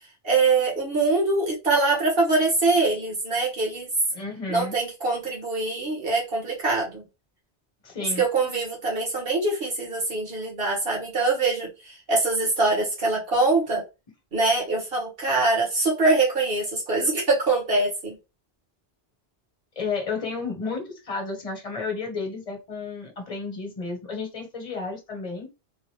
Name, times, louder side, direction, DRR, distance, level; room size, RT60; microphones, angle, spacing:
voice 1, 0.2-3.9 4.5-7.0 8.2-13.8 14.3-18.2, right 3 dB, 60° right, -1 dB, 1.7 m, -23 dB
voice 2, 4.1-4.7 7.8-8.2 19.8-25.5, left 4 dB, 35° left, 3 dB, 1.1 m, -32 dB
3.8 x 2.5 x 3.1 m, 0.26 s
omnidirectional pair, 1.1 m